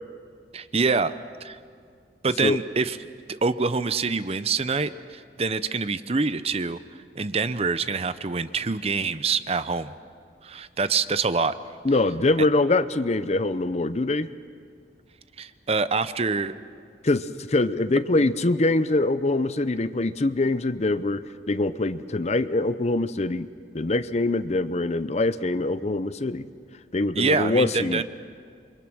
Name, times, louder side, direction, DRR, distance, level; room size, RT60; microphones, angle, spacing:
voice 1, 0.5-1.1 1.4-1.6 2.2-3.0 3.3-6.8 7.2-9.9 10.4-11.5 15.4-16.5 27.2-28.0, right 4 dB, 35° right, 13 dB, 0.6 m, -25 dB
voice 2, 11.8-14.3 17.0-23.5 23.7-26.5 26.9-28.0, left 2 dB, 40° left, 14 dB, 0.6 m, -24 dB
28.5 x 24.0 x 6.2 m, 2.1 s
head